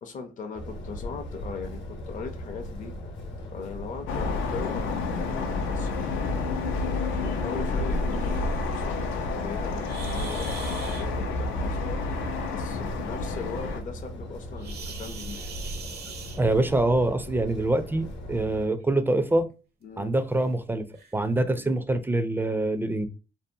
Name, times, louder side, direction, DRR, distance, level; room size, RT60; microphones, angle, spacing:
voice 1, 0.0-3.0 3.5-6.4 7.0-9.0 9.4-12.0 12.5-15.4 19.8-20.1, left 5 dB, 40° left, 0.5 m, -39 dB
sound 1, 0.6-18.7, equal, 60° left, 0.9 m, -37 dB
sound 2, 4.1-13.8, left 4 dB, 90° left, 0.5 m, -30 dB
sound 3, 9.8-11.1 14.6-16.8 18.1-18.2 18.8-18.9 19.5-19.6 20.4-20.5 20.9-21.1, right 5 dB, 55° right, 0.6 m, -42 dB
voice 2, 16.4-19.5 20.0-20.9 21.1-23.1, right 2 dB, 10° right, 0.4 m, -25 dB
2.7 x 2.0 x 2.6 m
cardioid pair, 90°, 20 cm